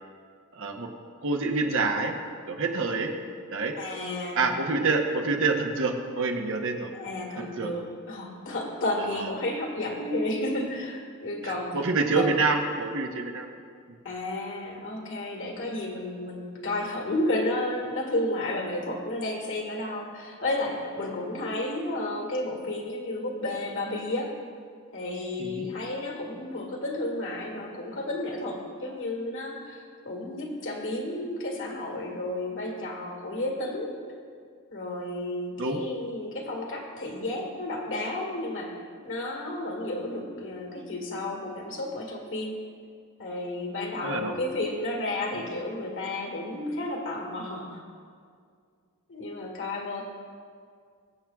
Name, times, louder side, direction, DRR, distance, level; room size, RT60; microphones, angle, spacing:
voice 1, 0.5-0.9 1.2-2.1 2.5-3.1 3.5-3.8 4.4-6.9 7.4-7.7 9.2-9.3 11.4-13.6 13.9-14.0 25.4-25.7 35.6-35.8 44.0-44.4, right 3 dB, 65° right, 3 dB, 1.0 m, -27 dB
voice 2, 3.8-4.4 6.9-12.3 14.0-24.4 24.9-33.9 34.7-42.6 43.2-47.8 49.1-50.0, left 1 dB, 60° left, 0 dB, 1.8 m, -32 dB
22.0 x 7.4 x 2.3 m, 2.2 s
head